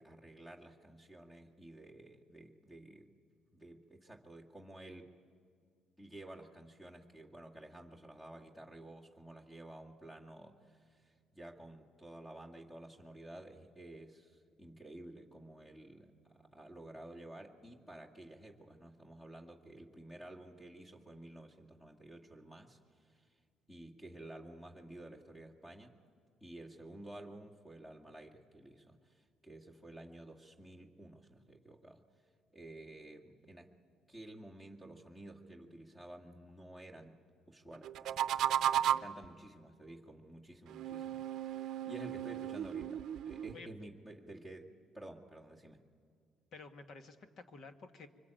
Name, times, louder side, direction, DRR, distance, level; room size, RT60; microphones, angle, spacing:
voice 1, 0.0-3.1 3.5-5.1 6.0-23.3 23.7-26.0 26.4-32.0 32.5-33.7 34.1-37.2 37.5-45.9, right 1 dB, 15° left, 0 dB, 2.1 m, -52 dB
sound 1, 37.8-39.2 40.7-43.5, right 10 dB, 70° right, 0.6 m, -35 dB
voice 2, 46.5-48.1, left 3 dB, 55° left, 8 dB, 1.7 m, -51 dB
24.5 x 24.5 x 9.0 m, 2.2 s
cardioid pair, 115°, 0 cm